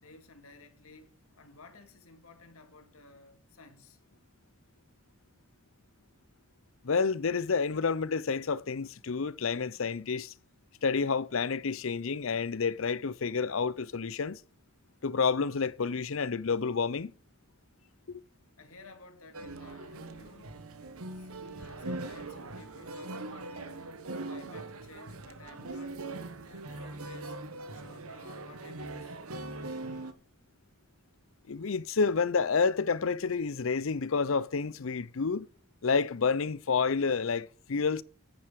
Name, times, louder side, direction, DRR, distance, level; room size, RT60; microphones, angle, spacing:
voice 1, 0.0-4.0 18.6-20.5 21.1-23.9 24.3-26.0 26.3-27.4 27.7-29.2, left 3 dB, 85° left, 2.2 m, -54 dB
voice 2, 6.8-10.3 10.8-14.4 15.0-17.1 18.1-18.2 31.5-35.5 35.8-38.0, left 5 dB, 70° left, 0.6 m, -29 dB
sound 1, 19.3-30.1, right 2 dB, 90° right, 1.2 m, -41 dB
9.9 x 9.0 x 5.1 m
head